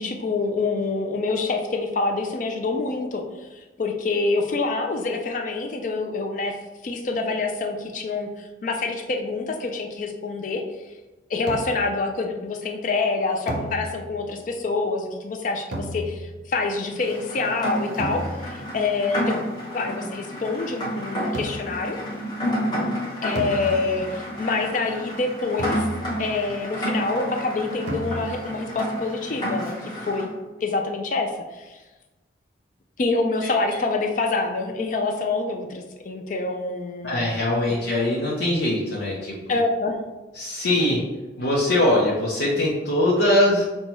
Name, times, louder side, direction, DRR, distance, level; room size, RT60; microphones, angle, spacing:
voice 1, 0.0-6.6 6.8-10.6 11.3-18.2 18.5-19.5 19.7-22.0 23.2-25.9 26.2-30.3 30.6-31.8 33.0-37.4 37.7-37.8 39.5-40.0, left 3 dB, 40° left, 3 dB, 0.3 m, -26 dB
sound 1, 11.5-12.0 13.5-14.3 15.7-16.5 18.0-18.7 21.3-21.9 23.4-24.2 25.6-26.4 27.9-28.6, right 1 dB, 65° right, 0.6 m, -33 dB
Rain, 17.0-30.3, equal, 20° left, 0.8 m, -30 dB
voice 2, 37.0-39.4 40.4-41.0 41.4-43.6, left 1 dB, 85° left, -6 dB, 0.7 m, -22 dB
5.4 x 2.2 x 3.0 m, 1.2 s
head